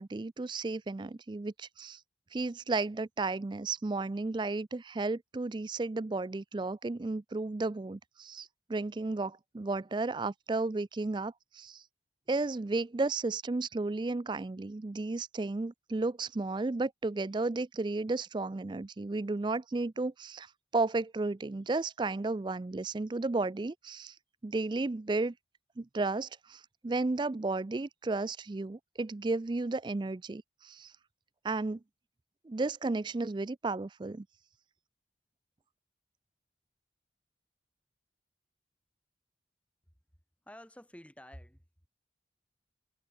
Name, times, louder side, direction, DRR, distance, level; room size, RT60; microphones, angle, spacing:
voice 1, 0.0-2.0 2.3-11.8 12.3-20.5 20.7-24.1 24.4-25.3 25.8-30.9 31.4-31.8 32.5-34.3, right 3 dB, 25° right, 0.4 m, -33 dB
voice 2, 40.4-41.9, equal, 5° left, 6.6 m, -51 dB
head